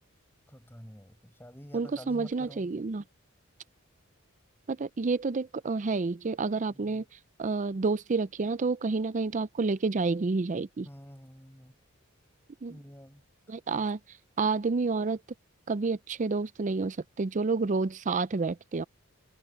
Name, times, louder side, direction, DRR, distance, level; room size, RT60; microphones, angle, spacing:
voice 1, 0.5-2.6 6.7-7.0 10.8-11.7 12.7-13.2 13.7-13.9, equal, 10° left, 5.3 m, -49 dB
voice 2, 1.7-3.0 4.7-7.0 7.4-10.9 12.6-12.8 13.5-14.0 14.4-15.2 15.7-18.8, right 4 dB, 35° right, 0.4 m, -29 dB
head